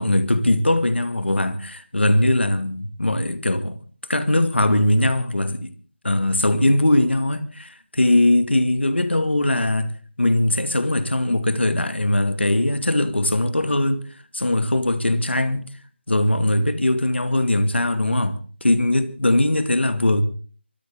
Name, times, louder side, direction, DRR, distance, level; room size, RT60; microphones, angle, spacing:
voice 1, 0.0-3.8 4.1-5.7 6.0-14.1 14.3-15.7 16.1-20.2, left 1 dB, 70° left, 2.3 m, -20 dB
24.0 x 14.0 x 3.8 m
figure-of-eight pair, 180°, 6 cm